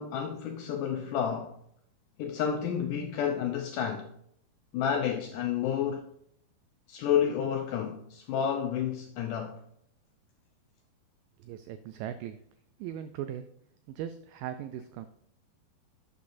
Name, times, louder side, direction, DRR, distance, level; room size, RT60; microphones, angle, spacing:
voice 1, 0.0-1.5 2.2-4.1 4.7-6.1 6.9-9.6, left 8 dB, 85° left, 1.8 m, -30 dB
voice 2, 11.4-12.4 12.8-13.5 13.9-15.1, right 10 dB, 85° right, 2.0 m, -38 dB
11.5 x 8.5 x 2.6 m
omnidirectional pair, 4.4 m